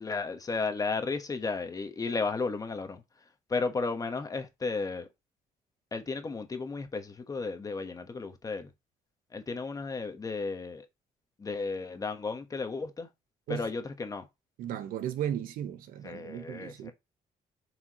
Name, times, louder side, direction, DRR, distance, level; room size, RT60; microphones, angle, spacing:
voice 1, 0.0-3.0 3.5-5.1 5.9-8.7 9.3-10.8 11.4-13.1 13.5-14.2 16.0-16.9, left 4 dB, 25° left, 1.2 m, -34 dB
voice 2, 14.6-16.9, right 10 dB, 80° right, 1.1 m, -35 dB
7.7 x 4.8 x 3.0 m
cardioid pair, 120°, 14 cm